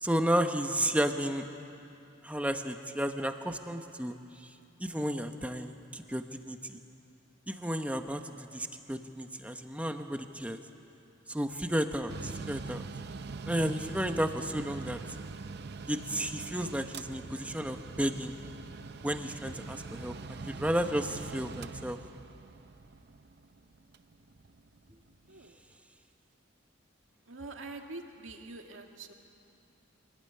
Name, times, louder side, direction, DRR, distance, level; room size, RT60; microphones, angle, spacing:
voice 1, 0.0-1.5 2.2-4.2 4.8-6.8 7.5-10.6 11.3-12.8 13.5-15.0 15.9-18.3 19.0-22.0, equal, 5° right, 6 dB, 1.0 m, -32 dB
Mechanical fan, 12.1-25.4, right 4 dB, 55° right, 0.6 m, -43 dB
voice 2, 27.3-29.1, right 2 dB, 90° right, 3 dB, 2.1 m, -44 dB
25.5 x 18.0 x 9.7 m, 2.6 s
head